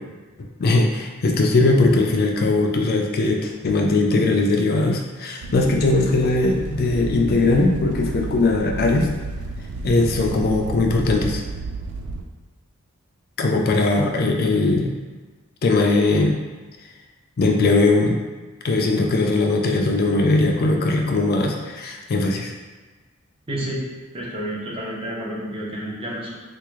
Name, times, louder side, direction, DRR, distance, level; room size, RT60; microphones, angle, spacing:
voice 1, 0.6-9.1 9.8-11.4 13.4-14.9 15.6-16.4 17.4-18.2 18.6-22.5, left 2 dB, 45° left, 2 dB, 0.4 m, -19 dB
sound 1, 5.4-12.2, right 3 dB, 75° right, 0.3 m, -31 dB
voice 2, 23.5-23.9 24.1-26.3, right 1 dB, 25° right, -4 dB, 0.7 m, -30 dB
3.5 x 2.4 x 3.0 m, 1.3 s
head